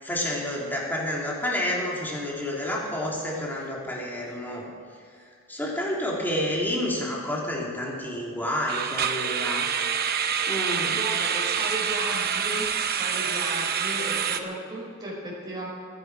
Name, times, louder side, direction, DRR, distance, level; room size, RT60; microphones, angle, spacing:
voice 1, 0.0-4.6 5.5-9.7 10.5-11.0, left 1 dB, 10° left, -4 dB, 3.1 m, -29 dB
sound 1, 2.5-2.8 3.0-3.2 3.7-3.8 8.7-14.4, right 7 dB, 45° right, 0.9 m, -27 dB
voice 2, 10.9-12.7 13.0-15.7, right 1 dB, 20° right, -5 dB, 4.9 m, -35 dB
21.0 x 11.0 x 4.9 m, 2.3 s
head